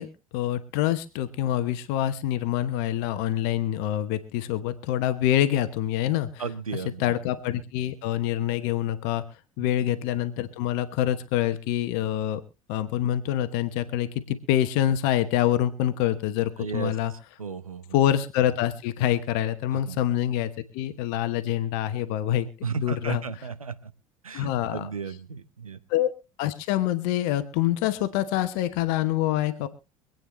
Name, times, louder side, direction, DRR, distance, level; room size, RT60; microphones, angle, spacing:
voice 1, 0.0-6.4 6.8-9.2 9.6-12.4 12.7-17.1 17.9-22.5 22.8-23.2 24.3-24.9 25.9-26.1 26.4-29.7, left 12 dB, 60° left, 12 dB, 1.1 m, -26 dB
voice 2, 6.4-7.1 9.6-9.7 16.6-17.8 19.7-20.0 22.6-23.9 24.2-25.8, right 5 dB, 85° right, 13 dB, 0.8 m, -34 dB
25.0 x 9.0 x 3.1 m, 0.29 s
figure-of-eight pair, 65°, 17 cm